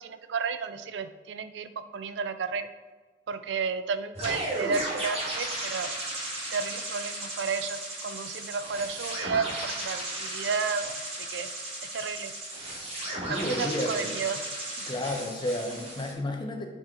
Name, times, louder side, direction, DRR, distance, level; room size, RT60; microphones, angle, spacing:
voice 1, 0.0-2.7 3.3-5.9 6.5-10.9 11.3-11.5 11.9-12.3 13.3-14.4, right 5 dB, 65° right, 11 dB, 0.4 m, -32 dB
sound 1, 4.1-16.1, right 1 dB, 35° right, 1.8 m, -35 dB
voice 2, 13.3-14.2 14.9-16.7, left 1 dB, 25° left, 3 dB, 0.8 m, -31 dB
8.5 x 4.5 x 3.8 m, 1.3 s
head